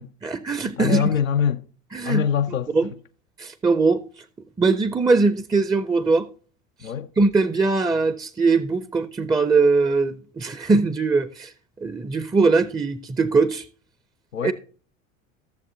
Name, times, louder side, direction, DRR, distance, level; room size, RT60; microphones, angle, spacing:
voice 1, 0.2-1.1 1.9-2.2 2.7-2.9 3.4-4.0 4.6-6.3 6.8-11.5 11.8-13.7 14.4-14.5, right 4 dB, 10° right, 0.5 m, -21 dB
voice 2, 0.8-1.6 2.0-2.7 6.8-7.1 14.3-14.5, left 8 dB, 90° left, 0.6 m, -23 dB
15.0 x 7.1 x 2.7 m
figure-of-eight pair, 70°, 39 cm